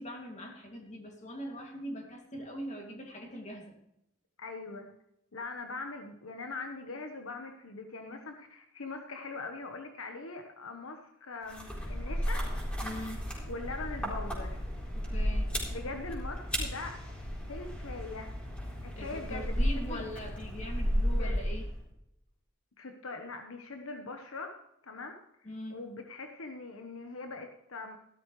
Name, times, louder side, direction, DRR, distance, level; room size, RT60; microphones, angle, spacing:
voice 1, 0.0-3.7 12.8-13.3 14.9-15.5 18.9-21.7 25.4-25.8, equal, 35° left, 2 dB, 2.5 m, -42 dB
voice 2, 4.4-4.9 5.3-12.5 13.5-14.6 15.7-17.0 17.5-18.3 18.8-20.1 21.2-21.4 22.8-24.5 24.8-28.0, left 3 dB, 80° left, 5 dB, 1.2 m, -42 dB
sound 1, 11.5-21.8, equal, 5° left, 4.0 m, -34 dB
15.0 x 12.5 x 3.2 m, 0.79 s
head